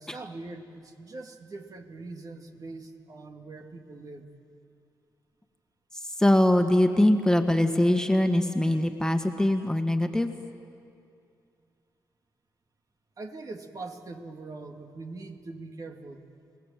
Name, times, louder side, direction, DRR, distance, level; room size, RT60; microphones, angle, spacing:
voice 1, 0.0-4.3 13.2-16.3, right 3 dB, 50° right, 4 dB, 2.3 m, -42 dB
voice 2, 6.2-10.3, left 1 dB, 10° left, 5 dB, 1.9 m, -22 dB
30.0 x 18.0 x 7.7 m, 2.4 s
supercardioid pair, 55°, 8 cm